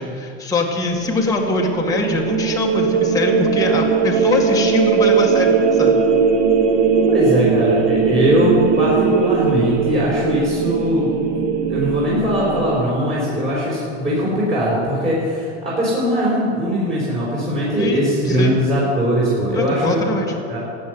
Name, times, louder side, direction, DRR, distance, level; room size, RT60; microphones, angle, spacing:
voice 1, 0.0-5.9 17.8-18.6 19.5-20.3, left 2 dB, 10° left, -2 dB, 1.9 m, -22 dB
sound 1, 0.9-12.8, right 5 dB, 55° right, 1.7 m, -19 dB
voice 2, 7.1-11.1 11.7-20.6, equal, 20° right, -8 dB, 4.6 m, -20 dB
14.0 x 8.6 x 9.4 m, 2.5 s
supercardioid pair, 135°, 33 cm